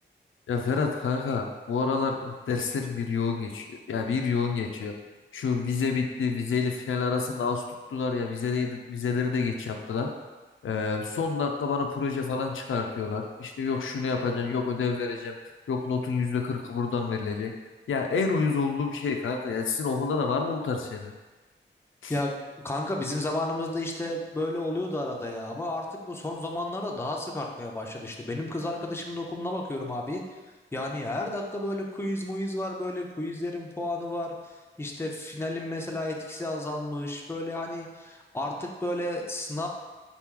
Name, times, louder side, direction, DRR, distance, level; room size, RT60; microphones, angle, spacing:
voice 1, 0.5-4.9 5.3-10.1 10.6-15.4 15.7-17.5 17.9-21.1 22.0-22.1, left 5 dB, 90° left, 3 dB, 0.5 m, -28 dB
voice 2, 22.1-30.2 30.7-39.7, left 1 dB, 10° left, 0 dB, 0.5 m, -32 dB
4.1 x 3.0 x 3.6 m, 1.2 s
wide cardioid pair, 120°, 20 cm